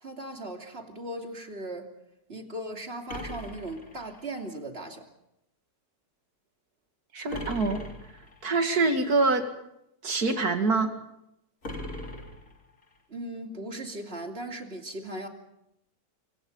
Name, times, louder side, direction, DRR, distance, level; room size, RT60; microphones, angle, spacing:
voice 1, 0.0-1.9 2.3-5.1 13.1-15.3, right 1 dB, 35° right, 3 dB, 3.0 m, -38 dB
sound 1, 3.1-4.5 7.3-8.5 11.6-13.0, left 1 dB, 45° left, 4.1 m, -40 dB
voice 2, 7.1-7.8 8.4-9.5 10.0-10.9, right 3 dB, 60° right, 6 dB, 2.7 m, -25 dB
26.5 x 24.5 x 5.5 m, 0.82 s
omnidirectional pair, 1.9 m